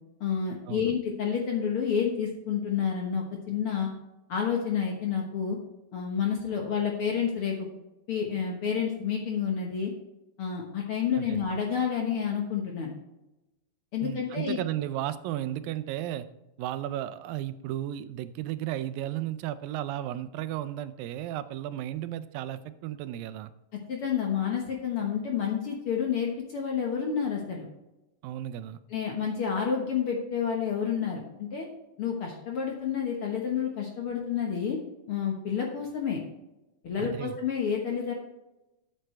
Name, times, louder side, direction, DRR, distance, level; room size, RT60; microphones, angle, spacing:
voice 1, 0.2-3.9 4.3-5.6 5.9-7.7 8.1-9.9 10.4-12.9 13.9-14.6 23.9-27.7 28.9-31.7 32.0-34.8 35.1-36.2 36.8-38.1, left 7 dB, 55° left, 0 dB, 1.6 m, -29 dB
voice 2, 14.0-16.3 16.6-23.5 28.2-28.8 37.0-37.4, right 12 dB, 90° right, 13 dB, 2.4 m, -34 dB
12.5 x 8.0 x 3.3 m, 0.96 s
omnidirectional pair, 4.0 m